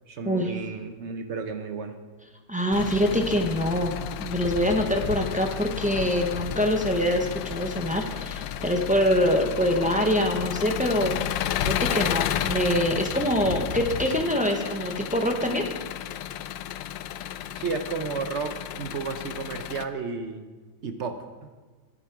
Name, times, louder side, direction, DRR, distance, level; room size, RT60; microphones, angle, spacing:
voice 1, 0.1-1.9 17.5-20.5 20.8-21.5, right 4 dB, 55° right, 8 dB, 0.8 m, -32 dB
voice 2, 2.5-11.1 11.6-15.7, equal, 10° right, 2 dB, 0.5 m, -25 dB
Engine, 2.7-19.8, left 10 dB, 85° left, 1.3 m, -32 dB
12.5 x 9.6 x 4.7 m, 1.4 s
omnidirectional pair, 2.0 m